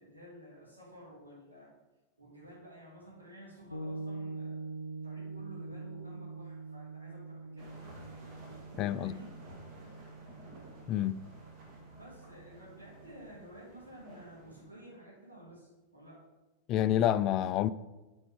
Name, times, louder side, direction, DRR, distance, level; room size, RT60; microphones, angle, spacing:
voice 1, 0.0-1.7 2.2-4.6 5.0-7.7 8.9-9.3 12.0-16.2, right 1 dB, 80° right, 2.7 m, -52 dB
sound 1, 3.7-13.4, right 3 dB, 80° left, 0.7 m, -45 dB
sound 2, 7.6-14.7, right 1 dB, 35° right, 2.2 m, -54 dB
voice 2, 8.8-9.1 10.9-11.1 16.7-17.7, left 12 dB, 35° left, 0.3 m, -28 dB
9.7 x 4.4 x 5.0 m
figure-of-eight pair, 90°, 0 cm